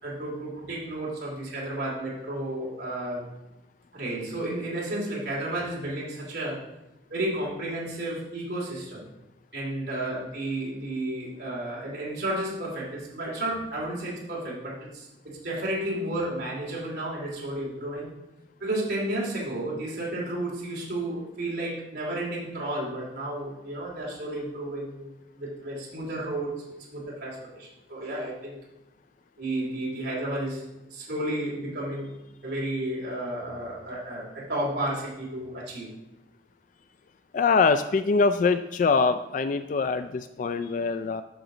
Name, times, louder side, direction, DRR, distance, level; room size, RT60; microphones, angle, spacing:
voice 1, 0.0-3.3 3.9-6.6 7.1-9.0 9.5-18.1 18.6-25.1 25.4-26.5 26.9-28.6 29.4-32.1 32.4-35.9, right 1 dB, 60° right, -5 dB, 2.7 m, -32 dB
voice 2, 37.3-41.2, left 4 dB, 45° left, 10 dB, 0.3 m, -23 dB
10.5 x 6.0 x 3.9 m, 0.93 s
head